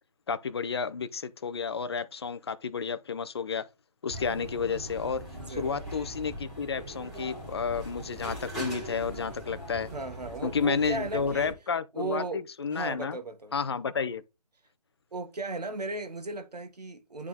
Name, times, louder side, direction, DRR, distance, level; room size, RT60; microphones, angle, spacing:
voice 1, 0.3-3.6 4.0-5.3 5.6-9.9 10.4-13.2 13.5-14.2, left 6 dB, 40° left, 0.5 m, -31 dB
sound 1, 4.1-11.5, right 1 dB, ahead, 2.0 m, -41 dB
voice 2, 5.4-5.8 9.9-11.5 11.9-12.4 12.7-13.5 15.1-17.3, right 3 dB, 90° right, 1.4 m, -36 dB
10.5 x 3.6 x 3.5 m
figure-of-eight pair, 160°, 20 cm